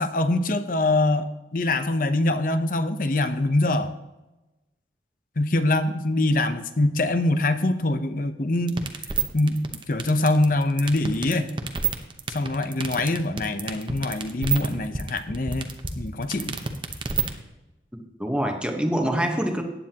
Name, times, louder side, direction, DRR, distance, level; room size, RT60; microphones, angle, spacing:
voice 1, 0.0-3.9 5.4-8.9 9.3-9.6 9.9-11.5 12.3-15.7 16.0-16.6, left 2 dB, 50° left, 10 dB, 0.8 m, -24 dB
sound 1, 8.7-17.3, right 6 dB, 25° right, 0.9 m, -27 dB
voice 2, 17.9-19.6, equal, 5° right, 3 dB, 1.1 m, -25 dB
15.0 x 9.7 x 2.9 m, 1.0 s
head